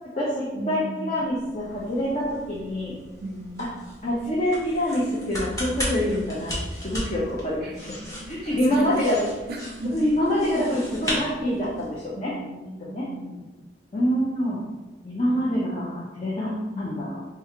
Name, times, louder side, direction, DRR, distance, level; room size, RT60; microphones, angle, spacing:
voice 1, 0.0-2.9 4.0-6.5 6.8-7.7 8.3-9.2 9.9-12.3 12.8-13.1 13.9-14.6 15.0-17.2, equal, 35° left, -7 dB, 0.6 m, -26 dB
voice 2, 0.5-1.2 3.2-3.8 7.6-9.2 9.5-9.9 12.1-13.5, right 1 dB, 55° right, 2 dB, 0.4 m, -37 dB
sound 1, 1.2-12.0, equal, 20° left, 0.9 m, -36 dB
4.6 x 2.4 x 2.9 m, 1.1 s
head